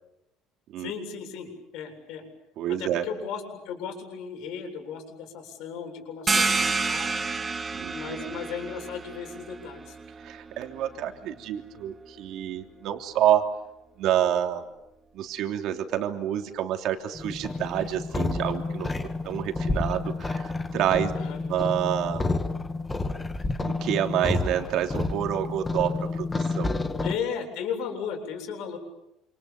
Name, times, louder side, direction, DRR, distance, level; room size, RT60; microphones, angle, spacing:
voice 1, 0.8-2.2 2.7-7.3 7.9-10.0 21.1-21.4 27.0-28.8, left 7 dB, 65° left, 5 dB, 7.8 m, -35 dB
voice 2, 2.6-3.1 7.7-8.4 10.2-13.5 14.0-14.7 15.1-18.9 19.2-21.1 21.5-22.4 23.6-26.7, right 11 dB, 55° right, 5 dB, 3.2 m, -28 dB
sound 1, 6.3-11.6, right 4 dB, 20° right, 1.7 m, -30 dB
sound 2, 17.1-27.1, left 3 dB, 15° left, 1.9 m, -29 dB
28.5 x 28.0 x 7.3 m, 0.86 s
cardioid pair, 150°, 0 cm